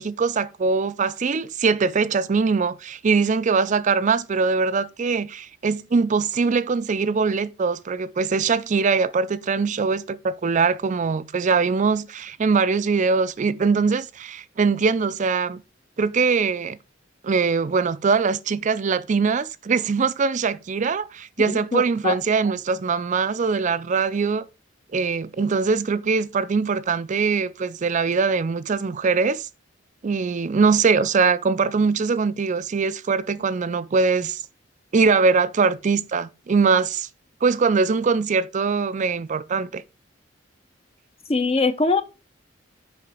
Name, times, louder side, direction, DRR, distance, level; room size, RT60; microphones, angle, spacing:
voice 1, 0.0-15.6 16.0-16.8 17.2-24.4 24.9-29.5 30.0-34.4 34.9-37.1 37.4-39.8, right 5 dB, 40° right, 0.4 m, -22 dB
voice 2, 21.4-22.2 41.3-42.0, left 3 dB, 30° left, 0.7 m, -22 dB
6.8 x 4.9 x 4.8 m
head